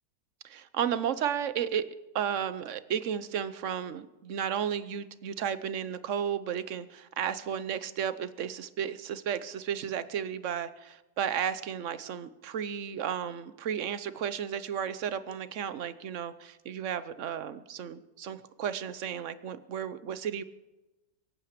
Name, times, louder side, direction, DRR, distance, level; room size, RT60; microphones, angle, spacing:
voice 1, 0.4-1.9 2.1-20.4, right 8 dB, 55° right, 14 dB, 1.0 m, -33 dB
22.5 x 9.0 x 6.7 m, 1.0 s
omnidirectional pair, 1.7 m